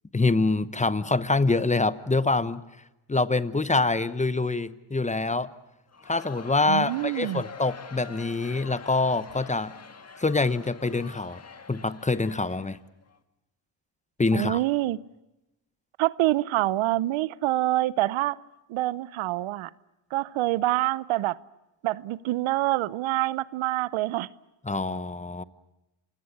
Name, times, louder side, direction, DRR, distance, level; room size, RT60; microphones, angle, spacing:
voice 1, 0.1-2.6 3.1-5.5 6.1-9.7 10.2-11.4 11.7-12.8 14.2-14.6 24.6-25.4, left 3 dB, 15° left, 15 dB, 0.9 m, -25 dB
Crowd, 5.9-13.2, left 5 dB, 35° left, 1.6 m, -45 dB
voice 2, 6.7-7.4 14.3-15.0 16.0-18.4 18.7-19.7 20.1-21.4 21.8-24.3, right 16 dB, 80° right, 19 dB, 0.8 m, -26 dB
27.5 x 17.5 x 8.5 m, 0.93 s
cardioid pair, 80°, 47 cm